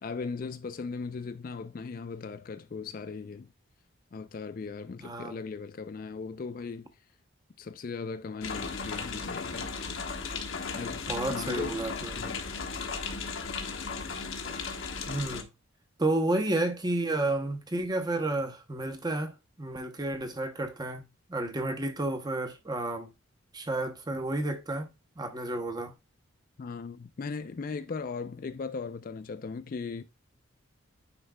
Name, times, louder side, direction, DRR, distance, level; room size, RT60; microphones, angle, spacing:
voice 1, 0.0-3.5 4.1-6.9 7.6-9.7 10.7-11.0 11.3-11.8 12.2-12.6 26.6-30.0, left 4 dB, 40° left, 0.3 m, -38 dB
voice 2, 5.0-5.4 11.1-12.1 15.1-15.5 16.0-21.0 21.3-23.1 23.5-25.9, right 2 dB, 20° right, 0.8 m, -31 dB
sound 1, 8.4-15.4, left 4 dB, 70° left, 1.1 m, -36 dB
9.8 x 4.5 x 2.2 m
head